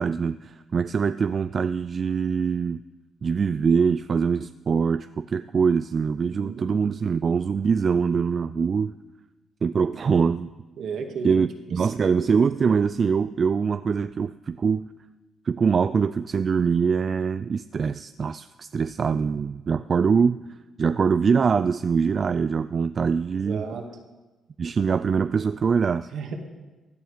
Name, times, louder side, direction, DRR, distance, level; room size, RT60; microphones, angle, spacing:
voice 1, 0.0-2.8 3.2-8.9 9.6-10.5 11.2-14.9 15.5-20.4 20.8-23.8 24.6-26.1, right 6 dB, 45° right, 13 dB, 0.3 m, -23 dB
voice 2, 6.2-6.7 10.8-11.4 11.7-12.3 23.3-23.9 26.1-26.4, right 5 dB, 65° right, 4 dB, 2.0 m, -34 dB
16.0 x 10.5 x 5.1 m, 1.2 s
cardioid pair, 90°, 0 cm